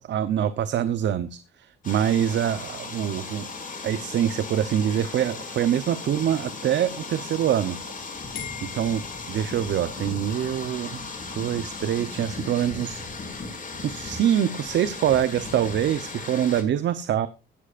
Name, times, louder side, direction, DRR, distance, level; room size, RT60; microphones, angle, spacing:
voice 1, 0.1-3.5 3.8-7.8 8.3-9.0 9.3-11.0 11.4-13.0 13.8-17.3, right 10 dB, 65° right, 14 dB, 0.9 m, -25 dB
sound 1, 1.8-16.6, left 4 dB, 40° left, 6.0 m, -37 dB
sound 2, 4.8-6.4 8.3-9.9, left 10 dB, 85° left, 5.2 m, -44 dB
15.5 x 12.5 x 2.5 m, 0.29 s
cardioid pair, 90°, 20 cm